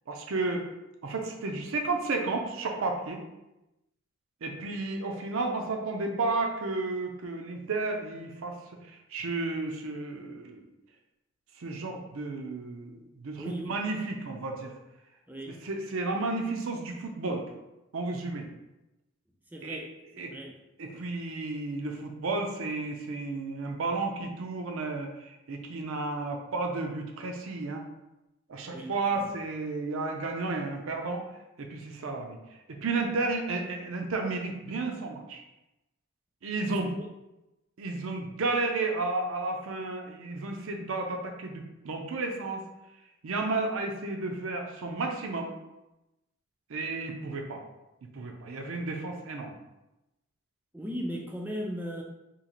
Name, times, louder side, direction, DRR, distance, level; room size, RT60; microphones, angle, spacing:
voice 1, 0.1-0.6 1.0-3.2 4.4-8.5 8.8-10.6 11.6-14.7 15.6-17.5 17.9-18.5 19.6-19.8 20.2-20.3 20.8-27.8 28.5-31.2 31.6-32.4 32.7-35.4 36.4-36.9 37.8-42.6 43.2-45.5 46.7-47.6 48.0-49.5, right 3 dB, 75° right, 3 dB, 0.5 m, -32 dB
voice 2, 13.4-13.8 15.3-15.6 19.5-20.6 28.6-29.3 36.8-37.1 50.7-52.0, equal, 10° right, 0 dB, 0.3 m, -38 dB
3.0 x 2.4 x 3.8 m, 0.96 s
head